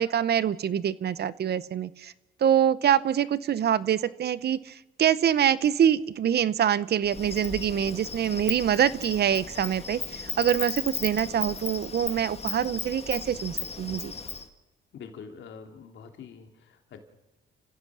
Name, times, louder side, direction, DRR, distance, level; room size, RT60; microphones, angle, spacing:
voice 1, 0.0-2.1 2.4-14.1, right 9 dB, 55° right, 18 dB, 0.8 m, -25 dB
Insect, 7.1-14.5, left 5 dB, 30° left, 1.8 m, -36 dB
voice 2, 14.9-17.0, left 6 dB, 70° left, 5 dB, 2.9 m, -45 dB
30.0 x 15.5 x 6.2 m, 1.1 s
cardioid pair, 90°, 20 cm